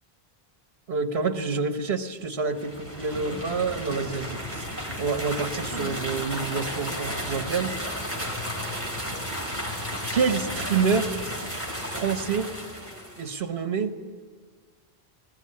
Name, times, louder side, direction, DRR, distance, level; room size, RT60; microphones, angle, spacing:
voice 1, 0.9-4.7 5.0-7.8 10.1-11.3 11.9-12.5 13.2-14.0, right 5 dB, 75° right, 7 dB, 1.5 m, -27 dB
sound 1, 2.5-13.3, equal, 15° left, 5.3 m, -33 dB
21.5 x 19.5 x 9.8 m, 1.5 s
omnidirectional pair, 1.1 m